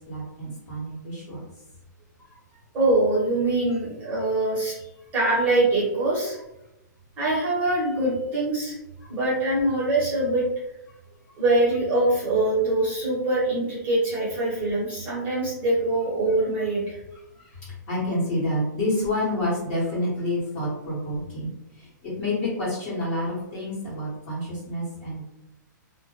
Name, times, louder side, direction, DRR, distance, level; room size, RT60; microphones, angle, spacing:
voice 1, 0.1-1.4 3.7-3.8 9.0-9.1 17.4-25.2, left 1 dB, 30° left, -7 dB, 1.0 m, -29 dB
voice 2, 2.7-4.8 5.1-6.4 7.2-8.7 9.1-10.4 11.4-17.0, right 2 dB, 15° right, -8 dB, 0.9 m, -23 dB
2.1 x 2.1 x 2.8 m, 0.89 s
hypercardioid pair, 165°, 10 cm